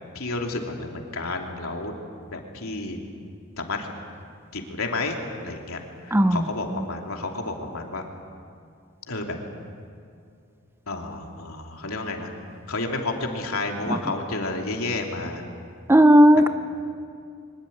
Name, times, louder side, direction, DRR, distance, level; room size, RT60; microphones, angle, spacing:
voice 1, 0.1-1.9 2.3-3.0 3.6-3.9 4.5-5.2 5.4-8.0 9.1-9.4 10.9-12.3 12.7-15.4 16.3-16.4, left 2 dB, 85° left, 2 dB, 3.1 m, -31 dB
voice 2, 6.1-6.4 15.9-16.5, equal, 10° right, 10 dB, 0.6 m, -14 dB
24.0 x 21.0 x 8.7 m, 2.4 s
head